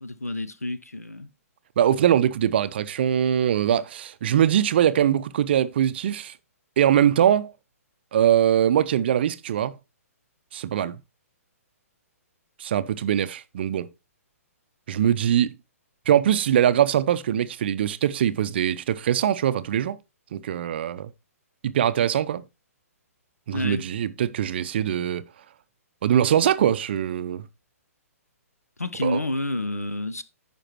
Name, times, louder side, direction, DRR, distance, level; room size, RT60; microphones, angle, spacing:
voice 1, 0.0-1.3 23.5-23.9 28.8-30.2, left 1 dB, 80° left, 0.9 m, -29 dB
voice 2, 1.8-6.3 6.8-7.5 8.1-9.7 10.5-11.0 12.6-13.9 14.9-15.5 16.1-20.0 20.3-21.1 21.6-22.4 23.5-25.2 26.0-27.4 29.0-29.2, right 10 dB, 45° right, 0.6 m, -22 dB
14.5 x 5.2 x 3.0 m
figure-of-eight pair, 120°, 8 cm